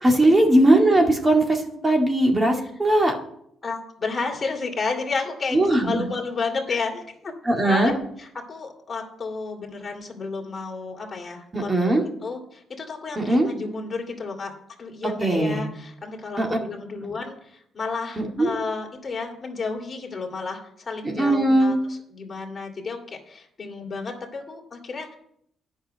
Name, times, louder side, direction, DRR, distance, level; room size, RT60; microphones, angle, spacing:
voice 1, 0.0-3.1 5.5-6.1 7.4-7.9 11.5-12.0 13.2-13.5 15.2-15.7 16.4-16.6 18.2-18.5 21.2-21.8, right 1 dB, 20° right, 2 dB, 2.0 m, -19 dB
voice 2, 3.6-7.3 7.6-7.9 8.2-11.7 12.2-25.1, left 4 dB, 30° left, 0 dB, 2.6 m, -32 dB
10.0 x 5.7 x 7.9 m, 0.71 s
cardioid pair, 90°, 0 cm